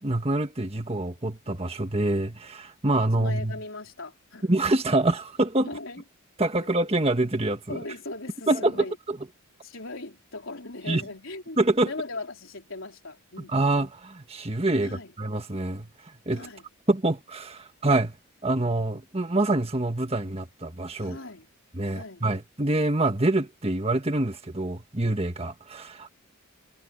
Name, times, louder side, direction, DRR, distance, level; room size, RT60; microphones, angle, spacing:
voice 1, 0.0-3.6 4.4-5.7 6.4-7.8 8.5-9.2 10.9-11.0 11.6-11.9 13.5-16.5 16.9-18.1 18.4-21.2 21.7-26.1, right 2 dB, 30° right, 1.7 m, -26 dB
voice 2, 3.2-4.6 5.6-6.0 6.6-6.7 7.7-9.0 9.6-13.8 14.8-15.1 16.3-16.7 21.0-21.5 21.8-22.3, left 3 dB, 65° left, 4.3 m, -39 dB
head